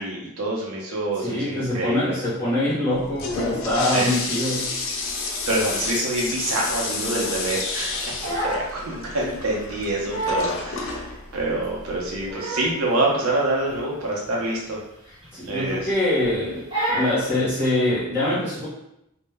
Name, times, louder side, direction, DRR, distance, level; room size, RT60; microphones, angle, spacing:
voice 1, 0.0-2.1 3.9-4.1 5.5-11.0 11.3-14.8 15.5-15.9, right 2 dB, 80° right, -3 dB, 0.6 m, -26 dB
voice 2, 1.2-4.7 10.7-10.8 15.3-18.7, left 1 dB, 10° left, -9 dB, 0.7 m, -24 dB
Toilet flush, 2.9-12.3, left 3 dB, 60° left, 0.4 m, -30 dB
Crying sobbing, 7.9-8.7 9.1-9.3 9.8-9.9 10.1-10.5 11.1-11.2 11.9-12.8 13.1-13.3 13.7-13.8 14.2-14.3 15.1-15.7 16.0-16.3 16.7-17.2, right 1 dB, 25° right, 1.0 m, -28 dB
2.0 x 2.0 x 3.3 m, 0.83 s
head